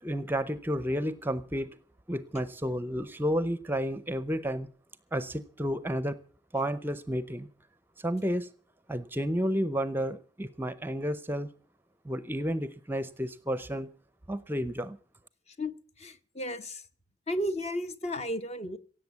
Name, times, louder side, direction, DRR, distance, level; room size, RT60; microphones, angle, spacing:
voice 1, 0.0-1.7 2.1-4.7 5.1-6.2 6.5-7.5 8.0-8.5 8.9-11.5 12.0-13.9 14.3-15.0, equal, 10° right, 15 dB, 0.6 m, -31 dB
voice 2, 15.6-16.8 17.3-18.8, equal, 35° left, 11 dB, 1.0 m, -34 dB
17.0 x 7.8 x 8.3 m, 0.43 s
head